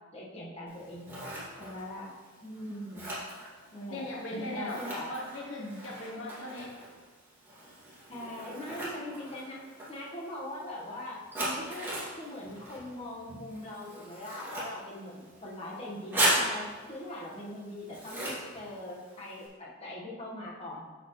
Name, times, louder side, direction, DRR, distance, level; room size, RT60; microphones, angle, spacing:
voice 1, 0.1-1.3 1.6-2.1 2.4-3.1 3.7-5.1 5.6-5.8 8.1-9.6 9.9-20.8, left 1 dB, 30° left, -3 dB, 1.4 m, -41 dB
Scissors, 0.7-19.5, right 1 dB, 10° right, 2.4 m, -38 dB
voice 2, 3.8-6.7, left 1 dB, 70° left, 0 dB, 0.9 m, -39 dB
8.2 x 6.9 x 3.1 m, 1.4 s
head